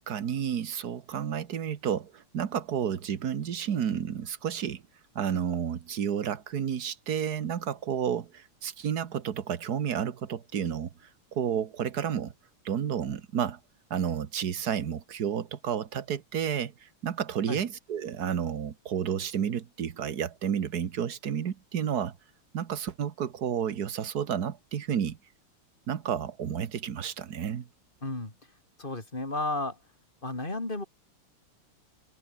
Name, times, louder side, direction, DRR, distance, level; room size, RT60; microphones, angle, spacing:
voice 1, 0.1-4.8 5.2-10.9 11.3-12.3 12.7-13.6 13.9-22.2 22.5-25.2 25.9-27.7, right 8 dB, 50° right, 1.6 m, -31 dB
voice 2, 28.0-28.3 28.8-29.8 30.2-30.8, left 2 dB, 20° left, 4.1 m, -32 dB
omnidirectional pair, 2.4 m